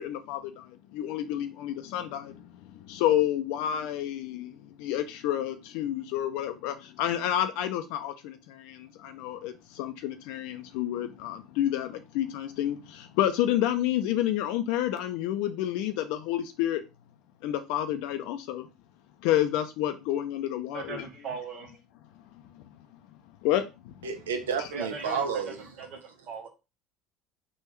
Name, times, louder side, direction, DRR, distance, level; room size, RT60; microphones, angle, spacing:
voice 1, 0.0-16.8 17.4-18.7 19.2-21.1 22.5-22.6 23.4-24.1 24.6-24.7, left 12 dB, 70° left, 7 dB, 0.3 m, -30 dB
voice 2, 20.7-21.8 24.7-26.5, right 5 dB, 55° right, 4 dB, 0.9 m, -39 dB
voice 3, 24.0-25.5, right 6 dB, 90° right, 6 dB, 0.5 m, -30 dB
3.3 x 2.2 x 3.1 m, 0.27 s
hypercardioid pair, 75°, 0 cm